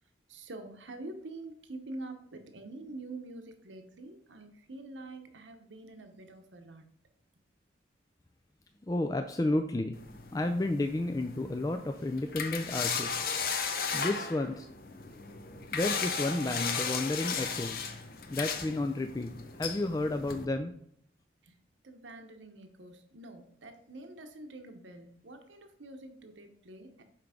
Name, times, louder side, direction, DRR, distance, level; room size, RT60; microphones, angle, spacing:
voice 1, 0.3-6.9 21.4-21.6 21.8-27.0, right 2 dB, 85° right, 6 dB, 0.9 m, -46 dB
voice 2, 8.9-13.2 13.9-14.7 15.7-17.8 18.3-19.3 19.6-20.7, left 2 dB, 20° left, 6 dB, 0.3 m, -31 dB
sound 1, 9.9-20.4, left 5 dB, 50° left, 0.7 m, -36 dB
5.8 x 4.6 x 5.0 m, 0.66 s
head